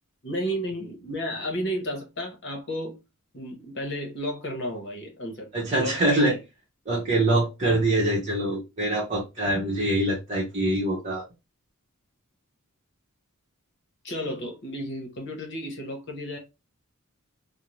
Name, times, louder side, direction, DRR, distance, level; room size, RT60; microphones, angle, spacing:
voice 1, 0.2-3.0 3.3-5.5 5.8-6.4 14.0-16.4, equal, 55° left, 1.0 m, -32 dB
voice 2, 5.5-6.4 6.9-11.2, right 1 dB, 35° right, 0.8 m, -24 dB
2.6 x 2.1 x 3.0 m
head